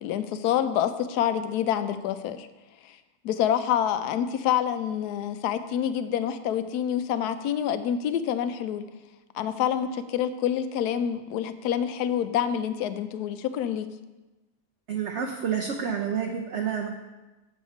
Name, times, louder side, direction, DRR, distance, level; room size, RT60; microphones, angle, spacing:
voice 1, 0.0-2.5 3.2-8.8 9.3-13.9, left 9 dB, 80° left, 11 dB, 1.1 m, -27 dB
voice 2, 14.9-16.9, right 7 dB, 60° right, 2 dB, 0.8 m, -29 dB
7.4 x 7.2 x 4.3 m, 1.1 s
omnidirectional pair, 1.7 m